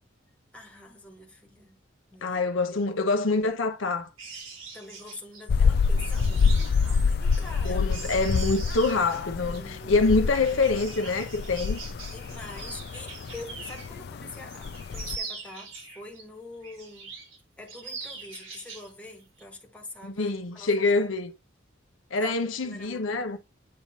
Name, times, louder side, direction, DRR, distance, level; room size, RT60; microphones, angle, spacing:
voice 1, 0.5-1.8 2.1-2.4 2.7-2.9 4.7-8.3 9.4-10.0 10.3-10.6 12.0-17.1 17.6-21.1 22.1-23.4, left 2 dB, 5° left, 1.4 m, -45 dB
voice 2, 2.2-4.1 7.6-11.8 20.0-21.3 22.1-23.4, left 3 dB, 80° left, 0.8 m, -25 dB
sound 1, 4.2-14.0 14.3-16.2 16.6-17.4 17.7-18.9 19.2-19.4, right 4 dB, 80° right, 3.2 m, -42 dB
sound 2, 5.5-15.2, left 5 dB, 55° left, 0.3 m, -27 dB
8.7 x 3.1 x 4.0 m
head